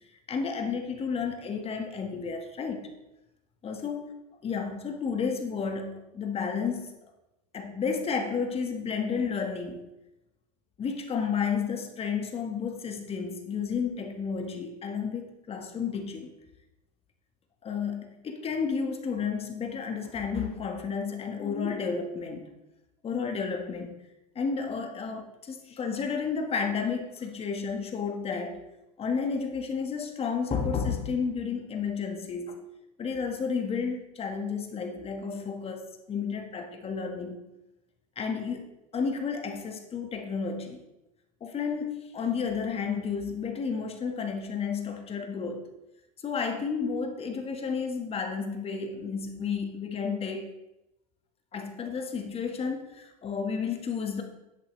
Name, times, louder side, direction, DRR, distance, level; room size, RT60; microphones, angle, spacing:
voice 1, 0.3-2.9 3.6-4.0 4.4-6.9 7.5-9.9 10.8-16.3 17.6-22.4 23.0-23.9 24.3-28.6 29.0-32.7 33.0-37.5 38.2-40.8 41.4-45.7 46.2-50.5 51.5-54.2, left 5 dB, 30° left, 5 dB, 1.5 m, -32 dB
10.5 x 8.2 x 3.2 m, 0.94 s
hypercardioid pair, 95°, 20 cm